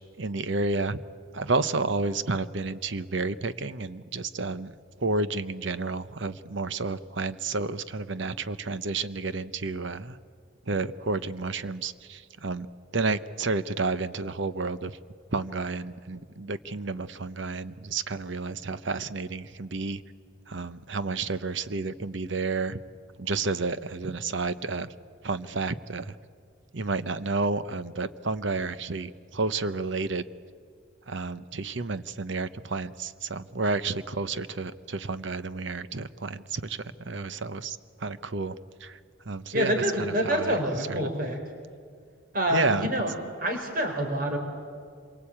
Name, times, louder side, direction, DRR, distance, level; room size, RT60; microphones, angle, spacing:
voice 1, 0.2-1.0 1.3-4.7 5.0-10.2 10.7-12.7 12.9-15.0 15.3-20.0 20.5-22.8 23.2-24.9 25.2-26.2 26.7-30.2 31.1-39.0 39.3-40.6 40.9-41.1 42.5-42.9, right 3 dB, 65° right, 14 dB, 0.8 m, -31 dB
voice 2, 39.5-41.4 42.3-43.1 43.4-44.4, equal, 45° right, 4 dB, 4.2 m, -27 dB
26.5 x 23.0 x 8.6 m, 2.1 s
head